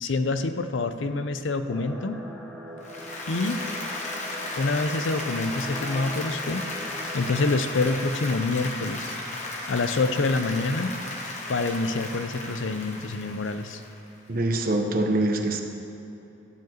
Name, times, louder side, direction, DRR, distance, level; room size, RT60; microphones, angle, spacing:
voice 1, 0.0-2.2 3.3-3.7 4.6-6.7 7.1-9.1 9.7-11.0 11.5-13.8, left 3 dB, 85° left, 9 dB, 0.6 m, -26 dB
sound 1, 1.7-8.0, equal, 5° left, 1.3 m, -41 dB
Applause, 2.8-14.2, left 2 dB, 40° left, 1.4 m, -35 dB
voice 2, 14.3-15.6, right 2 dB, 50° right, 4 dB, 1.0 m, -24 dB
13.5 x 4.8 x 7.6 m, 3.0 s
head